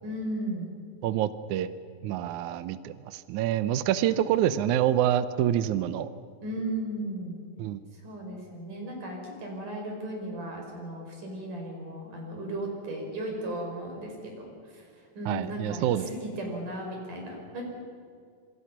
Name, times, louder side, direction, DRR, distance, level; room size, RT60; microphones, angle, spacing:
voice 1, 0.0-0.7 4.0-4.1 4.4-4.6 6.4-7.3 8.0-14.8 15.2-17.6, right 1 dB, 60° right, 1 dB, 6.4 m, -36 dB
voice 2, 1.0-1.7 2.0-6.1 7.6-7.8 15.3-16.1, right 11 dB, 75° right, 13 dB, 1.8 m, -27 dB
27.0 x 25.0 x 6.0 m, 2.2 s
omnidirectional pair, 4.2 m